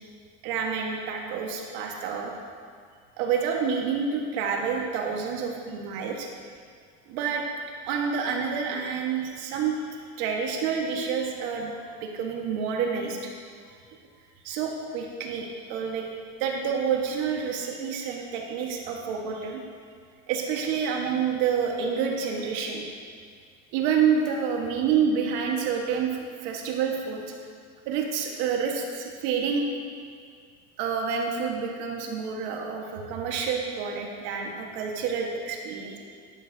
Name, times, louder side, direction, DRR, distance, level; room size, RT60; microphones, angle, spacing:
voice 1, 0.4-2.3 3.2-6.3 7.1-7.4 7.9-9.8 10.2-11.7 12.0-13.2 14.4-16.1 16.4-19.6 20.3-22.8 23.7-27.2 27.9-29.7 30.8-36.0, right 6 dB, 80° right, 1 dB, 1.5 m, -28 dB
11.5 x 10.5 x 2.8 m, 2.1 s
supercardioid pair, 110°, 33 cm